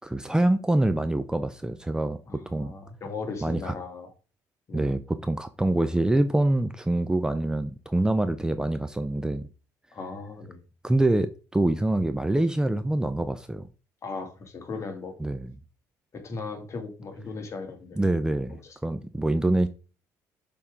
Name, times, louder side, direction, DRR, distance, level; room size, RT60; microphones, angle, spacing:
voice 1, 0.0-2.2 2.5-2.7 3.4-3.7 4.7-9.5 10.8-13.7 15.2-15.5 18.0-19.7, right 1 dB, 10° right, 0.6 m, -25 dB
voice 2, 2.3-4.1 4.7-4.9 9.9-10.6 14.0-15.2 16.1-18.0 18.5-18.8, left 4 dB, 40° left, 2.1 m, -37 dB
7.0 x 3.7 x 5.1 m
cardioid pair, 90°, 7 cm